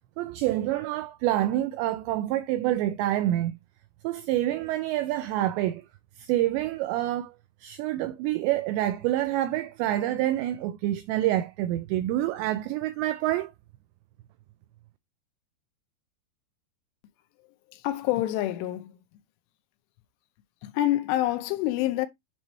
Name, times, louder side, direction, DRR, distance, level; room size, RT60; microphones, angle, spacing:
voice 1, 0.2-3.6 4.0-5.8 6.2-7.3 7.6-13.5, right 14 dB, 85° right, 2.5 m, -27 dB
voice 2, 17.7-19.0 20.6-22.1, left 14 dB, 85° left, 3.1 m, -27 dB
7.8 x 3.1 x 5.3 m
omnidirectional pair, 5.6 m